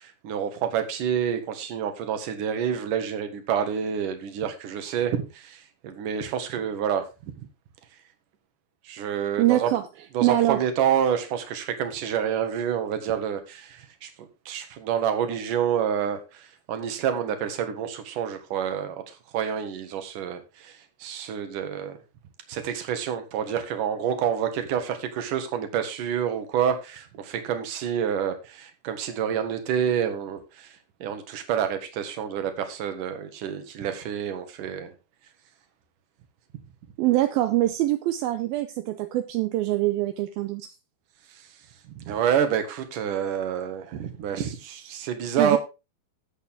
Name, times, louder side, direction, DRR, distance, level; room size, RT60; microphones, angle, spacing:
voice 1, 0.0-7.0 8.8-9.7 10.1-19.0 19.3-22.0 22.5-34.9 42.0-45.6, right 8 dB, 60° right, 2.8 m, -28 dB
voice 2, 9.4-9.8 10.2-10.6 37.0-40.7 45.4-45.6, right 15 dB, 75° right, 2.3 m, -24 dB
13.5 x 8.2 x 3.7 m
omnidirectional pair, 4.9 m